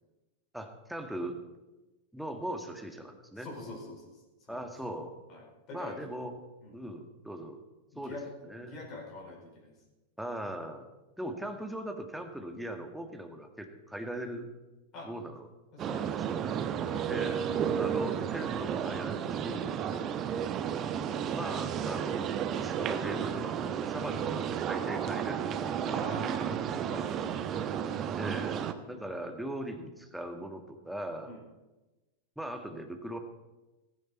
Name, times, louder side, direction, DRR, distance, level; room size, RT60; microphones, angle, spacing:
voice 1, 0.5-1.4 2.1-3.5 4.5-5.2 5.7-6.3 6.7-7.6 8.0-8.2 8.4-8.8 10.2-10.9 11.2-14.5 15.0-15.5 16.1-16.6 17.1-17.5 17.8-19.8 21.3-22.3 22.5-25.9 26.4-26.9 28.2-31.3 32.4-33.2, right 1 dB, ahead, 4 dB, 2.0 m, -40 dB
voice 2, 3.4-4.2 4.5-4.6 5.3-6.1 6.6-6.8 7.9-8.2 8.6-9.7 14.9-15.1 15.7-16.3 16.9-17.1 17.7-18.1 19.9-20.1 25.9-27.7 28.7-29.3 31.3-31.4, left 2 dB, 35° left, 0 dB, 5.1 m, -46 dB
sound 1, 15.8-28.7, right 8 dB, 30° right, 1.0 m, -32 dB
16.0 x 15.0 x 4.5 m, 1.1 s
figure-of-eight pair, 90°, 0 cm